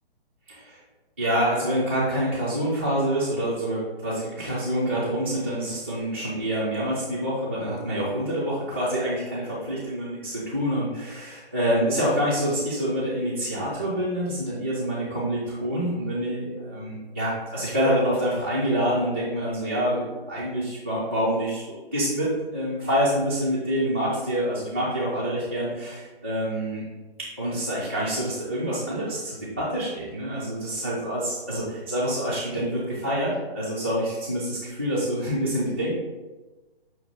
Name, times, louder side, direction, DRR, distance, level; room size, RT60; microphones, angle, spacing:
voice 1, 0.5-0.8 1.2-26.8 27.2-35.9, equal, 15° right, -10 dB, 0.3 m, -26 dB
5.7 x 2.4 x 3.6 m, 1.2 s
figure-of-eight pair, 135°, 31 cm